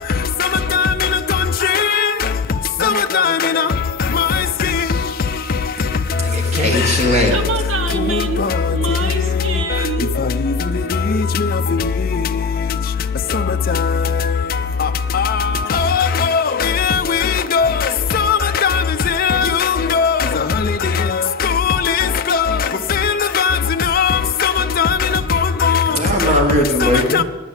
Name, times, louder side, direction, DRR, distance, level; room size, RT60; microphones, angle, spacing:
voice 1, 0.4-0.9 1.3-2.1 2.8-3.7 4.1-4.7 8.1-8.5 11.4-11.5 15.1-15.3 15.7-17.8 18.1-20.2 21.4-22.6 22.9-25.1 25.6-25.8 26.8-27.2, left 6 dB, 45° left, 0.5 m, -18 dB
voice 2, 6.2-7.4 25.9-27.2, equal, 30° right, 1.4 m, -18 dB
voice 3, 7.3-10.3, right 5 dB, 65° right, 1.1 m, -25 dB
9.9 x 8.9 x 8.0 m
head